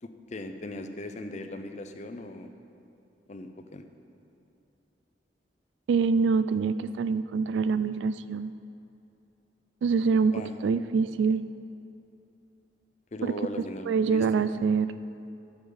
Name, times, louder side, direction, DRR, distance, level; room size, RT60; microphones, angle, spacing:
voice 1, 0.0-2.5 3.3-3.8 10.1-10.5 13.1-14.4, left 1 dB, 40° left, 7 dB, 0.6 m, -39 dB
voice 2, 5.9-8.5 9.8-10.3 10.6-11.4 13.2-13.4 13.9-14.9, right 5 dB, 80° right, 13 dB, 0.3 m, -25 dB
12.0 x 7.1 x 5.4 m, 2.7 s
head